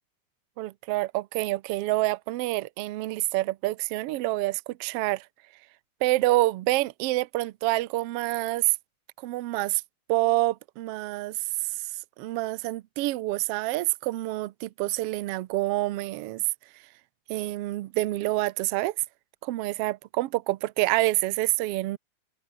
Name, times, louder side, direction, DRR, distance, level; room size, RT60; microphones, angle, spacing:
voice 1, 0.6-5.3 6.0-8.7 9.2-9.8 10.1-11.7 12.2-16.4 17.3-18.9 19.4-22.0, right 18 dB, 85° right, 1.3 m, -27 dB
open air
omnidirectional pair, 3.7 m